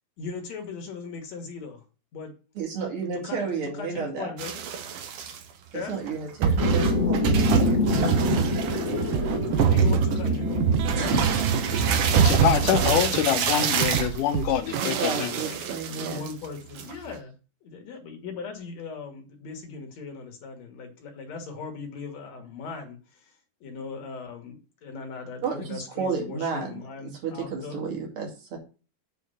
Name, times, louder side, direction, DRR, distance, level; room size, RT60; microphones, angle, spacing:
voice 1, 0.2-1.8 2.1-2.3 3.1-4.5 5.7-6.0 9.5-10.5 15.9-17.3 17.6-23.3 23.6-27.8, left 4 dB, 60° left, 3 dB, 2.5 m, -39 dB
voice 2, 2.6-4.3 5.7-8.3 10.9-11.2 14.8-16.2 25.4-26.8 27.2-28.6, right 5 dB, 45° right, 1 dB, 2.9 m, -32 dB
sound 1, 4.4-5.4 6.1-6.2 6.4-16.5 16.8-17.1, right 7 dB, 65° right, 1.5 m, -25 dB
sound 2, 6.6-12.3, left 3 dB, 40° left, 1.2 m, -27 dB
sound 3, 9.1-15.2, right 10 dB, 80° right, 2.1 m, -31 dB
voice 3, 12.1-15.4, left 10 dB, 80° left, 8 dB, 2.4 m, -25 dB
8.2 x 4.4 x 5.5 m, 0.35 s
omnidirectional pair, 3.8 m